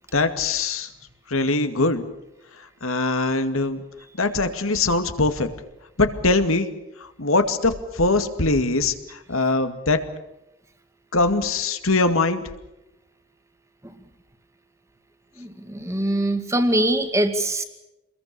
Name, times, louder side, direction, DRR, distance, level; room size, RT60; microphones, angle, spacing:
voice 1, 0.1-0.9 1.3-2.1 2.8-3.8 4.2-5.5 6.0-6.7 7.2-10.0 11.1-12.5, left 3 dB, 80° left, 8 dB, 2.3 m, -22 dB
voice 2, 15.4-17.6, right 1 dB, 15° right, 7 dB, 2.2 m, -23 dB
27.5 x 21.5 x 6.9 m, 0.93 s
head